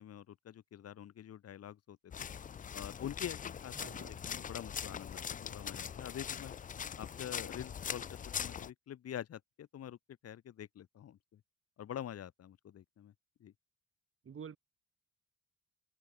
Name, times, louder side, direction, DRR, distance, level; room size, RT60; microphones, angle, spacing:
voice 1, 0.0-2.3 2.7-6.6 7.0-8.0 8.4-10.0 10.2-11.4 11.8-13.1 13.4-13.5, left 10 dB, 55° left, 1.1 m, -46 dB
sound 1, 2.1-8.7, left 8 dB, 30° left, 0.4 m, -42 dB
voice 2, 3.8-4.2 14.2-14.6, right 7 dB, 45° right, 3.0 m, -48 dB
open air
cardioid pair, 90°, 30 cm